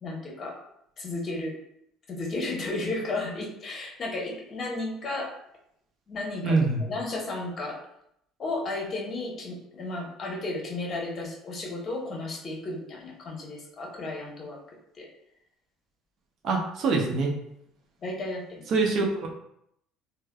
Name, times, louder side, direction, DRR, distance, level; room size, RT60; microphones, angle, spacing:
voice 1, 0.0-0.6 1.0-1.5 2.1-5.3 6.1-7.8 8.4-14.6 15.0-15.1 18.0-18.6, left 2 dB, 45° left, -1 dB, 0.9 m, -33 dB
voice 2, 6.4-6.8 16.4-17.3 18.7-19.3, right 3 dB, 60° right, 1 dB, 0.6 m, -24 dB
3.3 x 2.1 x 2.2 m, 0.75 s
hypercardioid pair, 70°, 0 cm